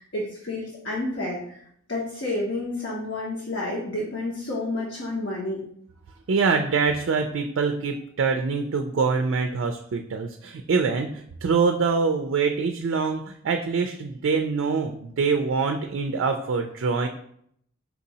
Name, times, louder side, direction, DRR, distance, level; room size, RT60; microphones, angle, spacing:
voice 1, 0.0-1.6 1.9-5.6, left 2 dB, 60° left, -5 dB, 0.9 m, -30 dB
voice 2, 6.3-17.1, right 5 dB, 70° right, 5 dB, 0.4 m, -24 dB
4.5 x 2.7 x 4.0 m, 0.67 s
head